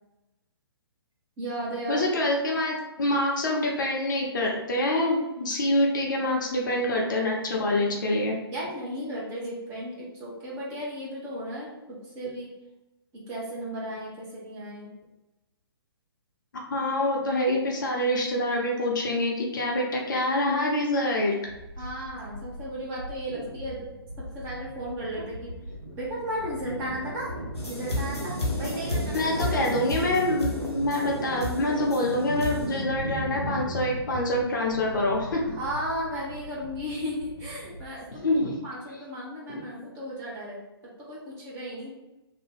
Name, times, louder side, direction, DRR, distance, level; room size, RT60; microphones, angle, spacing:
voice 1, 1.4-2.1 8.5-12.5 13.1-14.9 21.8-23.9 24.3-25.5 26.0-27.3 27.7-29.3 35.5-38.3 38.6-40.6 41.1-41.9, equal, 15° right, -6 dB, 0.8 m, -35 dB
voice 2, 1.9-8.3 16.7-21.5 29.1-35.6 38.2-38.6 39.5-39.6, left 1 dB, 50° left, -1 dB, 0.7 m, -26 dB
sound 1, 21.4-38.5, right 1 dB, 80° right, 0.7 m, -37 dB
sound 2, 27.6-32.8, left 2 dB, 85° left, 0.9 m, -33 dB
2.7 x 2.2 x 3.5 m, 0.99 s
figure-of-eight pair, 130°, 14 cm